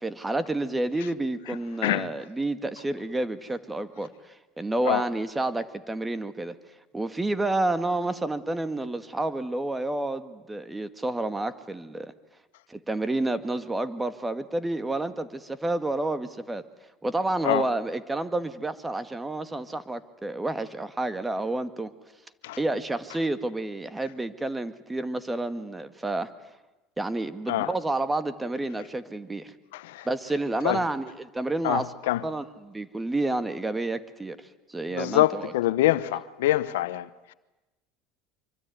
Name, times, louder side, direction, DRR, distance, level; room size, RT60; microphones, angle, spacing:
voice 1, 0.0-6.6 6.9-12.1 12.7-16.6 17.0-21.9 22.6-26.3 27.0-29.5 30.1-31.9 32.2-35.5, right 2 dB, 15° right, 1.9 m, -29 dB
voice 2, 29.7-30.1 30.6-30.8 31.6-32.2 34.9-37.3, left 15 dB, 80° left, 1.0 m, -25 dB
25.5 x 24.0 x 9.5 m
supercardioid pair, 90°, 0 cm